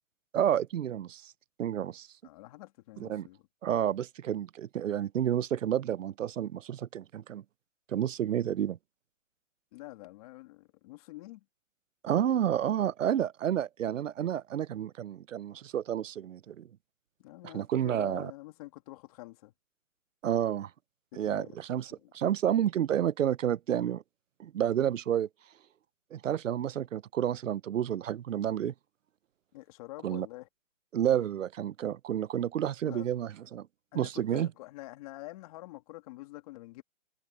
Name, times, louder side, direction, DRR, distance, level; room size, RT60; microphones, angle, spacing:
voice 1, 0.3-1.3 1.6-2.1 3.0-3.3 3.6-7.4 7.9-8.8 12.0-16.7 17.4-18.3 20.2-20.7 21.2-24.0 24.4-25.3 26.1-28.7 30.0-30.3 30.9-33.7 33.9-34.5, right 10 dB, 90° right, 0.8 m, -30 dB
voice 2, 2.2-3.4 9.7-11.4 17.2-19.5 21.1-21.6 21.9-22.1 29.5-30.5 32.9-33.1 33.9-36.8, left 19 dB, 30° left, 2.6 m, -47 dB
hypercardioid pair, 165°, 37 cm